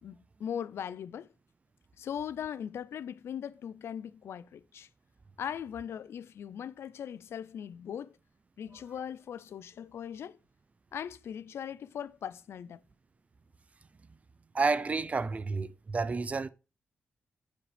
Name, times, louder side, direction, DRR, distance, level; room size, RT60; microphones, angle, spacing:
voice 1, 0.0-1.3 2.0-4.9 5.4-8.2 8.6-10.4 10.9-12.8, left 8 dB, 70° left, 0.5 m, -39 dB
voice 2, 14.5-16.5, right 4 dB, 30° right, 0.5 m, -30 dB
9.7 x 5.1 x 3.3 m
cardioid pair, 90°, 5 cm